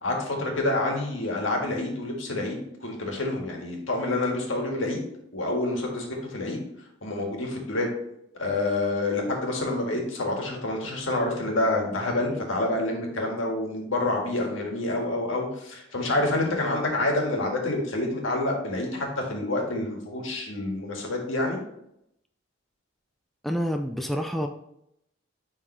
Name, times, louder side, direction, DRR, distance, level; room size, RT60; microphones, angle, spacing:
voice 1, 0.0-5.0 5.3-6.6 7.0-7.9 8.4-21.6, left 2 dB, 85° left, 1 dB, 1.7 m, -28 dB
voice 2, 23.4-24.5, equal, ahead, 4 dB, 0.3 m, -28 dB
9.7 x 3.7 x 3.2 m, 0.78 s
head